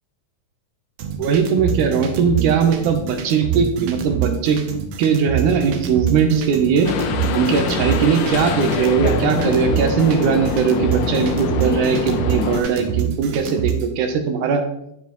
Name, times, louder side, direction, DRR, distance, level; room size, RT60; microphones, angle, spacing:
sound 1, 1.0-13.9, right 8 dB, 90° right, 1.3 m, -26 dB
voice 1, 1.2-4.6 5.0-6.9 7.3-14.6, right 6 dB, 75° right, 6 dB, 2.3 m, -19 dB
sound 2, 6.8-12.6, left 7 dB, 75° left, 2.1 m, -24 dB
9.3 x 7.3 x 3.0 m, 0.78 s
omnidirectional pair, 3.9 m